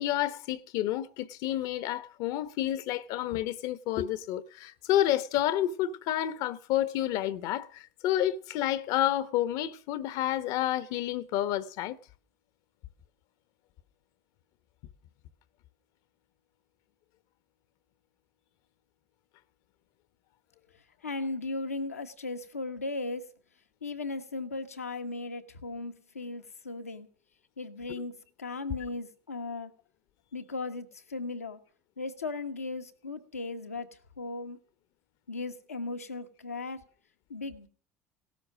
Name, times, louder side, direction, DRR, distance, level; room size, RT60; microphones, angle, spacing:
voice 1, 0.0-12.0, left 12 dB, 60° left, 1.1 m, -30 dB
voice 2, 21.0-23.3 23.8-27.1 27.6-29.7 30.3-31.6 32.0-34.6 35.3-36.8 37.3-37.7, left 3 dB, 85° left, 1.3 m, -37 dB
17.0 x 13.0 x 6.2 m
figure-of-eight pair, 65°, 8 cm